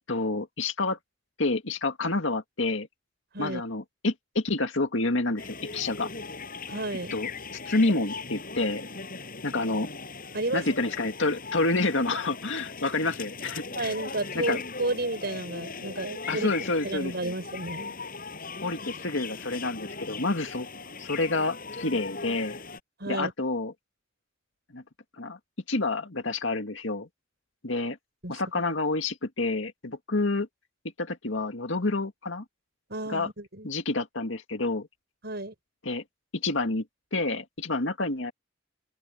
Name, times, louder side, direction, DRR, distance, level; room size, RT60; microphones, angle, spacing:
voice 1, 0.1-1.0 1.4-2.9 3.4-6.1 7.1-7.3 7.7-8.8 9.4-9.9 10.5-13.9 14.3-14.6 16.3-17.3 18.6-20.7 21.0-22.6 23.1-23.7 24.7-24.8 25.2-25.4 25.7-27.1 27.6-28.0 28.3-30.5 31.0-32.4 33.1-33.3 33.6-34.9 35.9-36.0 36.3-36.8 37.1-38.3, left 2 dB, 70° left, 2.1 m, -28 dB
sound 1, 5.4-22.8, left 4 dB, 45° left, 7.0 m, -39 dB
voice 2, 6.7-7.1 10.3-10.7 13.7-16.5 16.8-18.0 23.0-23.3 28.2-28.4 32.9-33.7 35.2-35.5, right 2 dB, 55° right, 6.6 m, -32 dB
open air
head